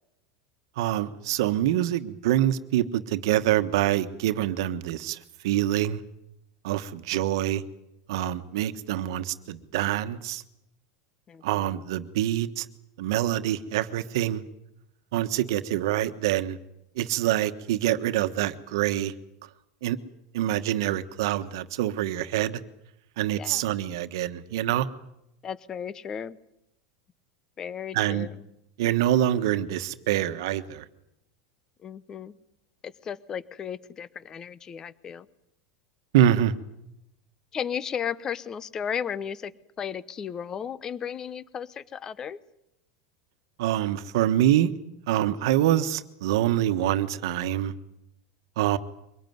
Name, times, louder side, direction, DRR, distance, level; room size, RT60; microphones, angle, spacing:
voice 1, 0.8-5.2 5.4-6.0 6.6-7.6 8.1-10.4 11.4-12.6 13.0-14.4 15.1-16.6 17.0-19.1 19.8-20.0 20.3-22.6 23.2-24.9 27.9-28.3 28.8-30.8 36.1-36.5 43.6-44.7 45.1-47.7 48.6-48.8, right 12 dB, 75° right, 10 dB, 1.3 m, -25 dB
voice 2, 11.3-11.7 23.3-23.6 25.4-26.4 27.6-28.4 31.8-32.4 32.8-35.3 37.5-42.4, left 8 dB, 25° left, 18 dB, 0.9 m, -35 dB
23.5 x 18.5 x 9.4 m, 0.85 s
supercardioid pair, 135°, 2 cm